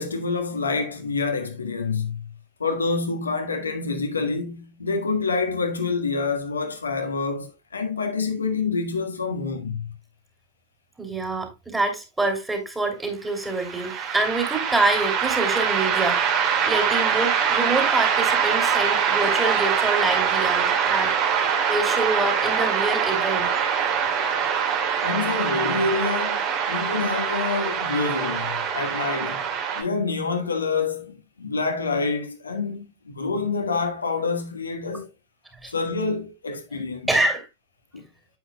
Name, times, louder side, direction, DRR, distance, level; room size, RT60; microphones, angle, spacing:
voice 1, 0.0-2.2 2.6-9.8 25.0-29.5 29.7-35.1 35.7-37.1 37.9-38.0, left 4 dB, 75° left, 1.5 m, -27 dB
voice 2, 11.0-21.1 21.7-23.5 35.6-35.7 37.1-37.5, right 2 dB, 10° right, 2.8 m, -26 dB
sound 1, 13.4-29.8, right 7 dB, 40° right, 2.4 m, -23 dB
9.5 x 8.0 x 2.2 m
figure-of-eight pair, 90°, 0 cm